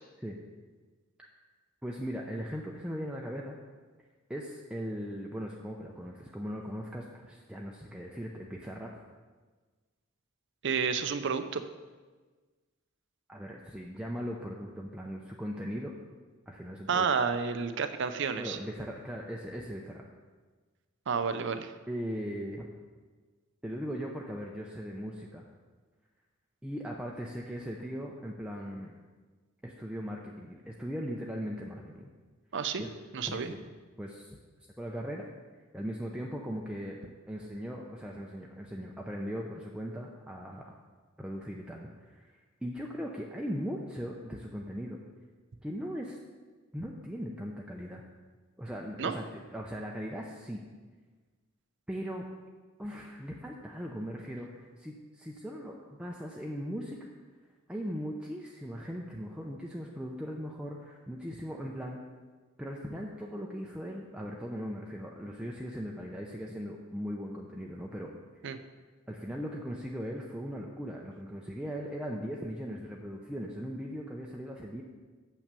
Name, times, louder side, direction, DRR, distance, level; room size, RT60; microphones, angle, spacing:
voice 1, 1.8-3.6 4.3-8.9 13.3-15.9 16.5-17.1 18.4-20.0 21.9-22.7 23.6-25.5 26.6-28.9 29.6-32.1 32.8-32.9 33.2-33.6 34.0-34.4 34.8-35.3 35.7-37.0 37.3-40.8 41.2-45.0 45.6-46.2 46.7-48.0 48.6-50.6 51.9-52.2 52.8-57.0 57.7-62.0 62.6-68.1 69.1-74.8, equal, 5° right, -1 dB, 0.6 m, -39 dB
voice 2, 10.6-11.6 16.9-18.6 21.1-21.7 32.5-32.8 33.1-33.5 49.0-49.1 68.4-68.6, right 6 dB, 60° right, 10 dB, 0.6 m, -30 dB
7.8 x 5.9 x 6.8 m, 1.4 s
head